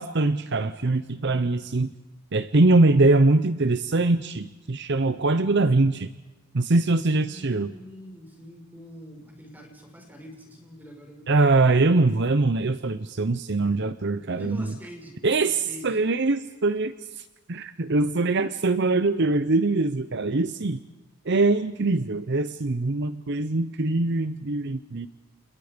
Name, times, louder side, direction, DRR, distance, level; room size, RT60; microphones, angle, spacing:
voice 1, 0.0-1.9 2.3-6.1 6.5-7.7 11.3-14.6 15.2-20.8 21.3-25.1, right 2 dB, 50° right, 12 dB, 0.7 m, -23 dB
voice 2, 7.1-11.5 14.3-16.0, equal, 10° right, 2 dB, 5.6 m, -45 dB
30.0 x 28.5 x 5.2 m, 1.1 s
head